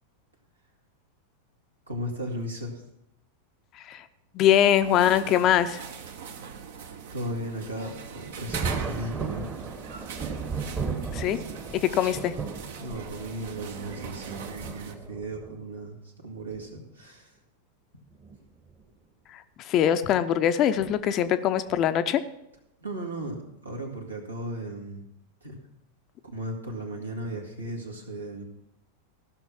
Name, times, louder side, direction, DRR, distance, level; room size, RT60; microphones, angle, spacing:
voice 1, 1.9-2.8 7.1-9.5 12.8-17.4 22.8-25.1 25.4-25.6 26.2-28.4, right 1 dB, 80° right, 1 dB, 2.1 m, -36 dB
voice 2, 4.3-5.8 11.1-11.4 11.7-12.3 19.6-22.2, left 10 dB, 35° left, 11 dB, 0.6 m, -22 dB
sound 1, 4.8-14.9, right 6 dB, 55° right, 1.0 m, -41 dB
Thunder, 8.5-15.5 16.5-16.6 18.1-18.4 18.7-18.8 20.8-21.0 21.7-22.0, right 5 dB, 20° right, 1.1 m, -36 dB
15.5 x 6.1 x 5.8 m, 0.85 s
figure-of-eight pair, 90°, 0 cm